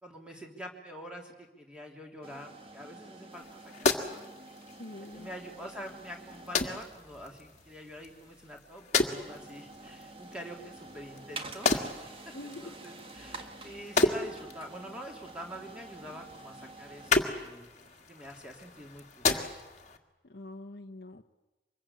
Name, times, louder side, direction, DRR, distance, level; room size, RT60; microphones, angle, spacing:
voice 1, 0.0-4.2 5.1-12.3 12.6-17.7 18.1-19.3, equal, 5° right, 0 dB, 3.3 m, -46 dB
sound 1, 2.2-19.1, right 3 dB, 30° right, 1.6 m, -49 dB
sound 2, 3.3-20.0, left 3 dB, 40° left, 1.8 m, -34 dB
voice 2, 4.8-5.3 12.3-12.8 20.2-21.2, left 2 dB, 60° left, 2 dB, 1.0 m, -44 dB
25.5 x 22.0 x 8.6 m, 1.1 s
head